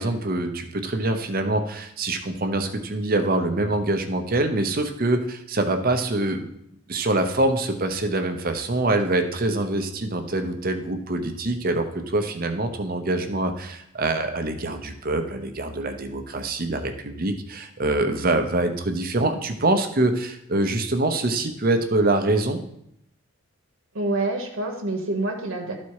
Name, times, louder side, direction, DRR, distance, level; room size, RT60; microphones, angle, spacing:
voice 1, 0.0-6.5 6.9-22.6, right 2 dB, 45° right, 7 dB, 0.8 m, -24 dB
voice 2, 23.9-25.8, right 2 dB, 80° right, 2 dB, 1.1 m, -27 dB
12.5 x 4.2 x 4.7 m, 0.75 s
head